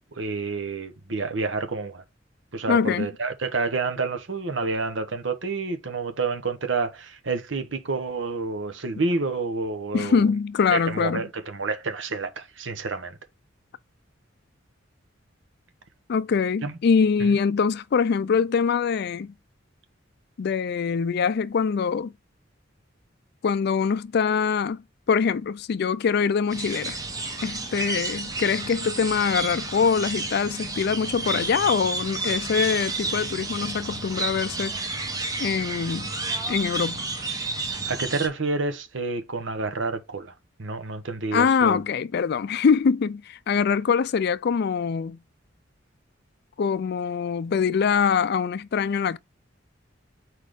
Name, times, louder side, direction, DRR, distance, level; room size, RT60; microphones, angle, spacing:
voice 1, 0.1-2.0 2.5-10.2 10.7-13.2 16.6-16.7 17.2-17.4 37.7-40.3 40.6-41.8, right 3 dB, 70° right, 1.0 m, -29 dB
voice 2, 2.7-3.1 9.9-11.2 16.1-19.3 20.4-22.1 23.4-24.8 25.1-27.0 27.4-34.8 35.4-36.1 36.5-37.0 41.3-45.2 46.6-49.2, left 6 dB, 55° left, 0.4 m, -23 dB
sound 1, 26.5-38.3, right 3 dB, 20° right, 1.0 m, -31 dB
4.6 x 4.2 x 5.0 m
head